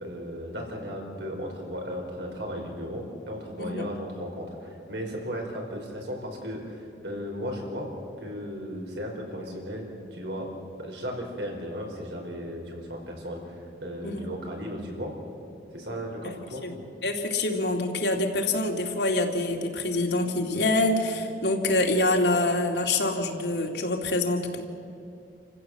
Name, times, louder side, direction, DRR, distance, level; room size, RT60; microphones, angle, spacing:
voice 1, 0.0-7.9 8.2-10.5 10.8-15.1 15.7-16.6, equal, 85° right, 0 dB, 5.1 m, -35 dB
voice 2, 17.0-24.6, left 2 dB, 75° left, 2 dB, 2.5 m, -26 dB
28.5 x 15.5 x 7.5 m, 2.6 s
head